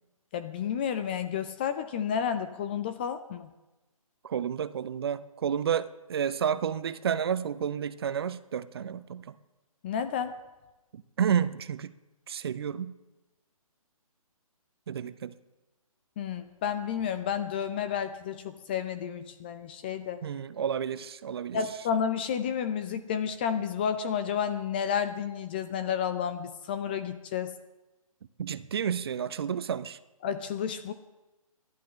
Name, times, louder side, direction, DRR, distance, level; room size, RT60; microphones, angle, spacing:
voice 1, 0.3-3.5 9.8-10.4 16.2-20.3 21.5-27.6 30.2-30.9, left 8 dB, 15° left, 0.4 m, -31 dB
voice 2, 4.2-9.3 11.2-11.9 12.3-12.9 14.9-15.3 20.2-21.6 28.4-30.0, right 8 dB, 45° right, 0.7 m, -30 dB
29.5 x 11.5 x 3.8 m
figure-of-eight pair, 150°, 19 cm